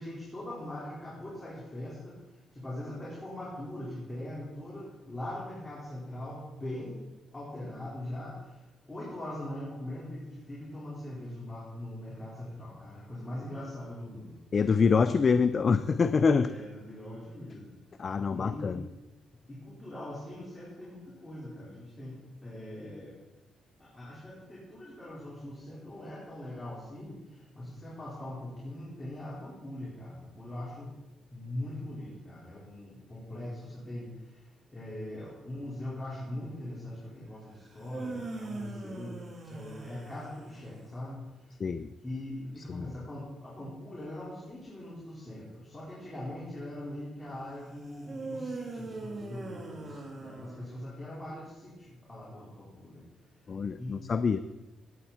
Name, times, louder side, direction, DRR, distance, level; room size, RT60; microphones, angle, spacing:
voice 1, 0.0-2.1 2.5-7.0 7.3-8.6 8.9-14.3 16.4-17.8 18.3-18.8 19.5-22.1 22.4-23.1 23.8-30.9 31.3-34.4 34.7-39.2 39.5-41.2 42.0-53.0 53.8-54.0, left 1 dB, 20° left, -7 dB, 4.6 m, -41 dB
voice 2, 14.5-16.5 18.0-18.9 41.6-41.9 42.7-42.9 53.5-54.4, left 5 dB, 40° left, 13 dB, 0.5 m, -25 dB
sound 1, 37.7-40.9 48.0-51.0, right 3 dB, 40° right, 3.4 m, -41 dB
17.5 x 9.2 x 4.3 m, 1.1 s
cardioid pair, 90°, 0 cm